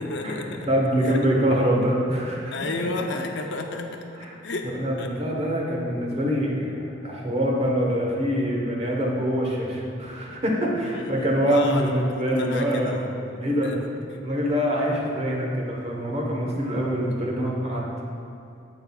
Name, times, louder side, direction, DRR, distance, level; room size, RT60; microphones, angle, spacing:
voice 1, 0.0-0.7 1.0-1.2 2.5-4.0 4.4-4.7 5.0-5.1 10.8-13.9, left 2 dB, 65° left, 3 dB, 0.6 m, -32 dB
voice 2, 0.7-2.5 4.2-4.3 4.7-6.7 7.0-13.0 13.4-13.7 14.0-17.8, equal, 35° right, -2 dB, 1.2 m, -24 dB
9.4 x 7.8 x 2.4 m, 2.6 s
head